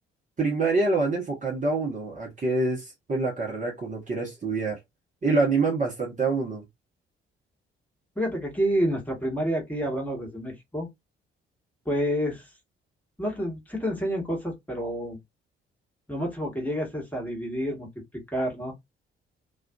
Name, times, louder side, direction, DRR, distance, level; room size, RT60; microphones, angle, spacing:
voice 1, 0.4-4.8 5.2-6.6, right 3 dB, 25° right, 1.0 m, -26 dB
voice 2, 8.2-10.9 11.8-12.5 13.2-15.2 16.1-17.9 18.1-18.7, equal, 5° left, 1.3 m, -29 dB
2.5 x 2.3 x 2.3 m
figure-of-eight pair, 45°, 29 cm